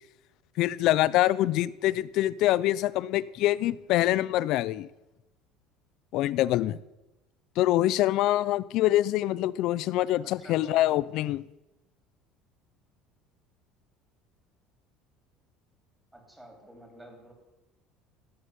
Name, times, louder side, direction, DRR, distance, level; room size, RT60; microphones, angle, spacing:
voice 1, 0.6-4.9 6.1-6.8 7.6-11.4, left 14 dB, 55° left, 18 dB, 0.6 m, -25 dB
voice 2, 10.2-10.8 16.1-17.3, right 1 dB, 5° right, 3 dB, 3.2 m, -49 dB
16.5 x 6.7 x 9.6 m, 0.99 s
cardioid pair, 155°, 0 cm